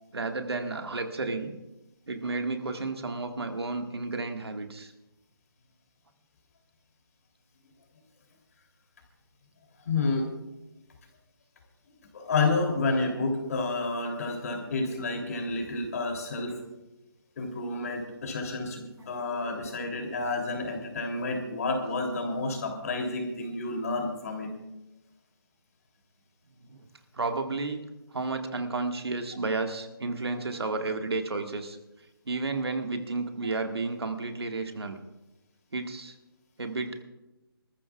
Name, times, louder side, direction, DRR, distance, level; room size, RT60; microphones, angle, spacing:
voice 1, 0.1-1.5 2.1-4.9 26.6-26.8 27.1-27.8 28.1-31.8 32.3-35.0 35.7-36.1 36.6-37.0, right 3 dB, 80° right, 5 dB, 1.8 m, -32 dB
voice 2, 9.8-10.3 12.1-16.6 17.4-24.5, left 3 dB, 40° left, 2 dB, 3.2 m, -30 dB
27.0 x 14.0 x 2.4 m, 1.0 s
hypercardioid pair, 165°, 13 cm